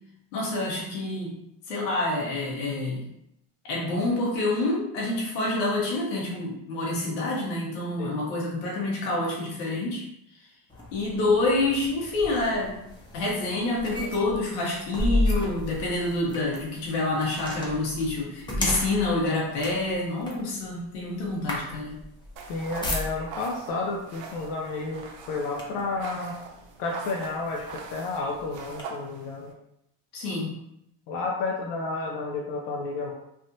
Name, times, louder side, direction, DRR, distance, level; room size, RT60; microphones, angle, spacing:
voice 1, 0.3-1.4 1.7-3.0 3.6-10.0 10.9-12.8 13.1-22.0 30.1-30.5, left 2 dB, 90° left, -3 dB, 1.2 m, -27 dB
sound 1, 10.7-23.5 24.4-24.6 25.0-26.0 26.6-26.7 27.2-28.8, left 1 dB, 10° left, 0.8 m, -33 dB
sound 2, 22.4-29.5, right 5 dB, 85° right, 0.7 m, -43 dB
voice 2, 22.5-26.4 26.8-29.5 31.1-33.1, left 3 dB, 65° left, -2 dB, 0.7 m, -31 dB
3.4 x 2.4 x 2.7 m, 0.80 s
supercardioid pair, 90°, 49 cm